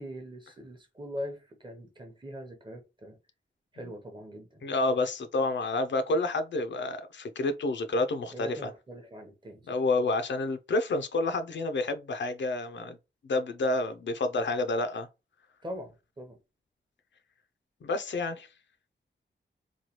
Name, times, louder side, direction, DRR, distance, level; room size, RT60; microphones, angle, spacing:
voice 1, 0.0-3.1 3.7-4.6 8.3-9.6 15.6-15.9 16.2-16.4, equal, 25° right, 0.7 m, -41 dB
voice 2, 4.6-8.7 9.7-13.0 13.3-15.1 17.8-18.5, left 2 dB, 65° left, 0.5 m, -29 dB
3.1 x 2.2 x 2.8 m
wide cardioid pair, 105°, 20 cm